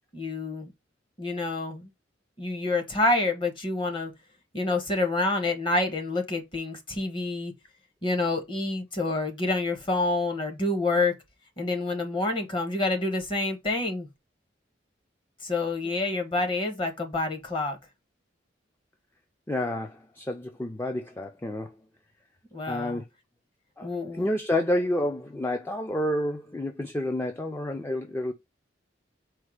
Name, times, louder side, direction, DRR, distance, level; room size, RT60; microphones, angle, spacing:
voice 1, 0.1-0.7 1.2-1.9 2.4-4.1 4.5-7.5 8.0-11.1 11.6-14.1 15.4-17.8 22.5-23.0 23.8-24.3, left 2 dB, 30° left, 1.0 m, -28 dB
voice 2, 19.5-21.7 22.7-23.0 23.8-23.9 24.1-28.3, left 1 dB, 15° left, 0.4 m, -29 dB
4.5 x 2.2 x 4.7 m
head